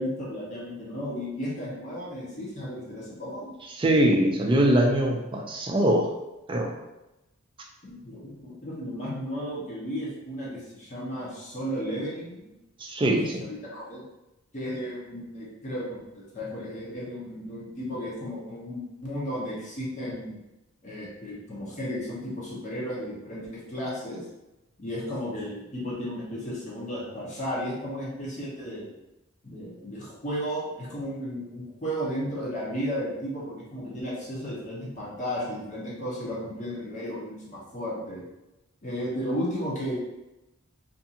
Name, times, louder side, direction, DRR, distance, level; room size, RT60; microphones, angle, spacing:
voice 1, 0.0-3.5 7.8-12.5 13.4-14.0 14.5-20.4 20.8-24.2 24.8-28.9 29.4-38.2 38.8-39.9, equal, 35° left, -6 dB, 0.7 m, -34 dB
voice 2, 3.8-6.1 6.5-6.7 12.8-13.4, right 1 dB, 25° right, 1 dB, 0.3 m, -22 dB
2.5 x 2.4 x 2.7 m, 0.96 s
head